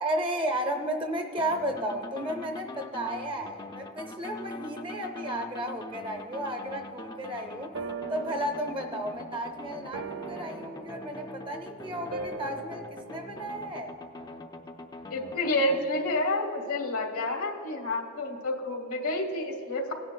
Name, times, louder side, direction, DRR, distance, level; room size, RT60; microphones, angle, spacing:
voice 1, 0.0-7.7 8.1-13.9, right 1 dB, 25° right, 5 dB, 0.6 m, -33 dB
sound 1, 1.3-15.8, left 2 dB, 20° left, 0.3 m, -43 dB
sound 2, 6.9-7.0 7.7-13.9, right 4 dB, 65° right, 0.5 m, -41 dB
voice 2, 15.1-19.9, left 2 dB, 85° left, 3 dB, 1.1 m, -29 dB
17.5 x 10.0 x 2.2 m, 2.9 s
head